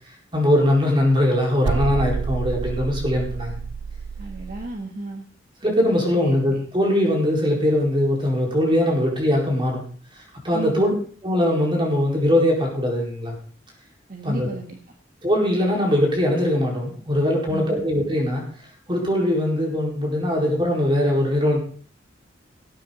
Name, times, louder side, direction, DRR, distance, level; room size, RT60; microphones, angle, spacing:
voice 1, 0.3-3.6 5.6-9.8 10.1-10.9 11.2-13.3 14.2-14.5 15.2-18.4 18.9-21.6, left 1 dB, 25° right, -1 dB, 4.5 m, -21 dB
sound 1, 1.6-4.7, right 5 dB, 70° right, 0.5 m, -28 dB
voice 2, 4.2-5.2 6.0-6.6 10.5-10.9 14.1-14.8 17.5-17.9, right 2 dB, 45° right, 2 dB, 1.5 m, -33 dB
18.5 x 9.0 x 4.0 m, 0.42 s
head